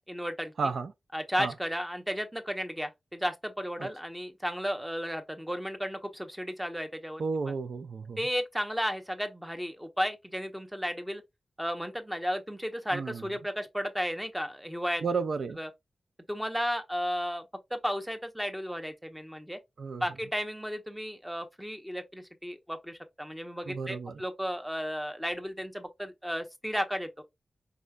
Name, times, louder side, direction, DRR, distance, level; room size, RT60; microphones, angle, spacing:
voice 1, 0.1-0.5 1.1-7.6 8.2-11.2 11.6-15.0 15.6-15.7 16.3-17.4 17.7-19.6 20.0-27.1, equal, 5° right, 1.1 m, -34 dB
voice 2, 0.6-0.9 1.4-1.5 3.8-3.9 7.2-8.2 12.9-13.2 15.0-15.6 19.8-20.0 23.7-24.2, right 4 dB, 75° right, 0.4 m, -32 dB
4.9 x 3.1 x 2.4 m
cardioid pair, 40°, 0 cm